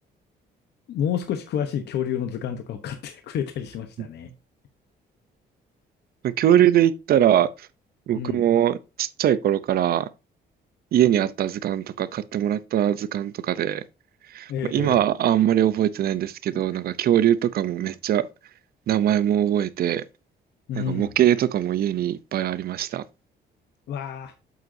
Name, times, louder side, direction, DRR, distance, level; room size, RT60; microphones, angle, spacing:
voice 1, 0.9-4.3 8.1-8.4 14.5-15.0 20.7-21.1 23.9-24.3, left 8 dB, 70° left, 1.0 m, -29 dB
voice 2, 6.2-7.7 8.1-10.1 10.9-13.8 14.3-18.3 18.9-20.0 20.8-23.0, right 11 dB, 55° right, 0.6 m, -22 dB
7.9 x 7.9 x 2.7 m
cardioid pair, 150°, 18 cm